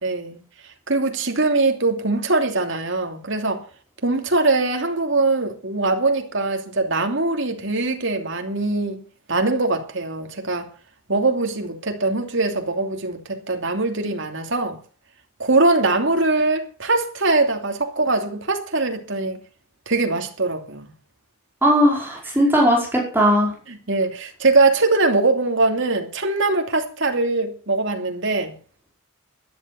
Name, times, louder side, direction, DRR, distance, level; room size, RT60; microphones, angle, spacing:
voice 1, 0.0-0.4 0.9-3.6 4.0-9.0 9.3-10.7 11.1-14.8 15.4-19.4 19.9-20.9 23.7-28.5, right 3 dB, 55° right, 2.9 m, -22 dB
voice 2, 21.6-23.5, equal, 10° right, 5.1 m, -18 dB
13.5 x 11.0 x 7.1 m
head